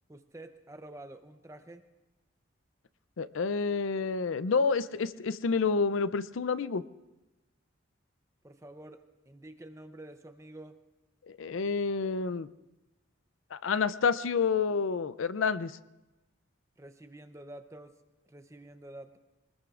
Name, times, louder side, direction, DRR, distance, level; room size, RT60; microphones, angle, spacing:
voice 1, 0.1-1.8 8.4-10.8 16.8-17.9 18.3-19.2, right 1 dB, 15° right, 8 dB, 0.7 m, -48 dB
voice 2, 3.2-6.8 11.3-12.5 13.5-15.8, left 5 dB, 80° left, 15 dB, 0.5 m, -29 dB
24.5 x 20.0 x 2.5 m, 1.0 s
head